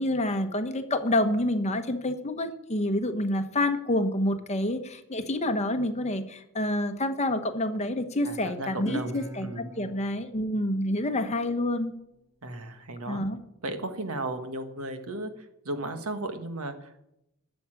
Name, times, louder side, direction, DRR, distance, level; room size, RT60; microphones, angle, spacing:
voice 1, 0.0-11.9 13.1-13.4, left 1 dB, 30° left, 8 dB, 1.1 m, -28 dB
voice 2, 8.2-9.7 12.4-13.2 13.6-15.3 15.6-17.0, right 2 dB, 80° right, 7 dB, 1.6 m, -35 dB
Guitar, 8.9-12.1, right 1 dB, 15° right, 2.5 m, -43 dB
12.0 x 7.2 x 8.8 m, 0.83 s
head